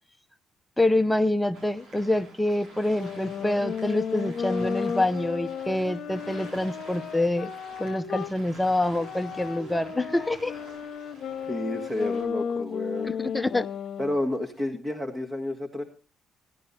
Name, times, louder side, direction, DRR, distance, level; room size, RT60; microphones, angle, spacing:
voice 1, 0.8-7.5 7.8-10.6 13.0-13.7, left 1 dB, 10° left, 9 dB, 0.7 m, -26 dB
sound 1, 1.5-12.2, right 1 dB, 85° right, 7.4 m, -49 dB
sound 2, 2.8-8.3 9.0-14.2, left 7 dB, 60° left, 1.1 m, -34 dB
voice 2, 11.5-13.1 14.0-15.8, left 1 dB, 25° right, 5 dB, 1.7 m, -30 dB
17.0 x 10.5 x 4.1 m, 0.33 s
cardioid pair, 90°, 0 cm